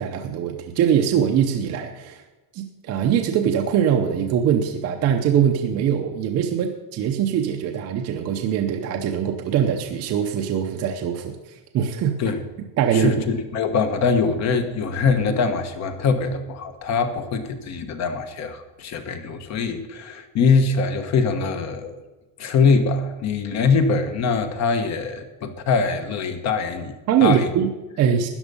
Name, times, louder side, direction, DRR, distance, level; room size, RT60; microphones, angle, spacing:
voice 1, 0.0-2.2 2.5-12.2 12.8-13.1 27.1-28.3, right 8 dB, 35° right, 4 dB, 0.8 m, -22 dB
voice 2, 12.9-22.0 22.4-27.5, left 5 dB, 35° left, 8 dB, 1.2 m, -23 dB
13.5 x 9.6 x 5.4 m, 1.2 s
cardioid pair, 175°, 47 cm